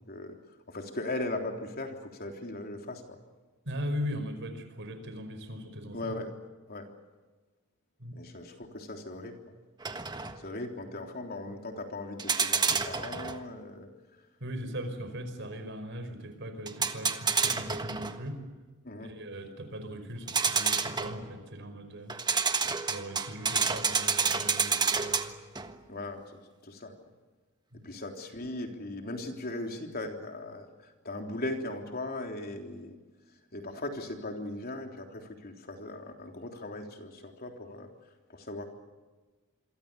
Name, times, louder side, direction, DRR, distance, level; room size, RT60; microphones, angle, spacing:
voice 1, 0.7-3.2 5.9-6.3 6.7-6.9 8.1-9.5 10.4-13.9 18.8-19.1 25.9-26.9 27.8-32.9 33.5-37.9 38.3-38.6, left 2 dB, 45° left, 3 dB, 3.5 m, -38 dB
voice 2, 3.6-6.1 8.0-8.2 14.4-18.4 19.0-22.2 22.9-25.4 27.7-27.9, equal, 55° right, 9 dB, 5.1 m, -39 dB
sound 1, 9.8-10.4 12.2-13.5 16.7-18.2 20.3-21.3 22.1-25.8, right 5 dB, 20° right, 1.4 m, -29 dB
28.0 x 23.5 x 6.9 m, 1.3 s
head